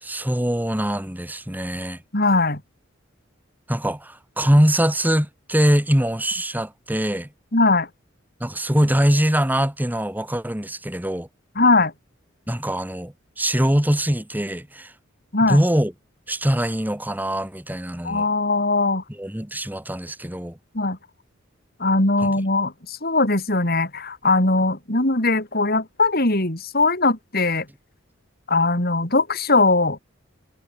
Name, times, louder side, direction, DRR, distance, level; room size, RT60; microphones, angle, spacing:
voice 1, 0.0-2.0 3.7-7.3 8.4-11.3 12.5-14.9 15.4-15.9 16.3-18.3 19.1-20.6 22.2-22.3, equal, 10° right, 1.9 m, -22 dB
voice 2, 2.1-2.6 7.5-7.9 11.6-11.9 15.3-15.6 18.0-19.0 20.7-21.0 21.8-27.7 28.5-30.0, left 3 dB, 50° left, 4.5 m, -20 dB
head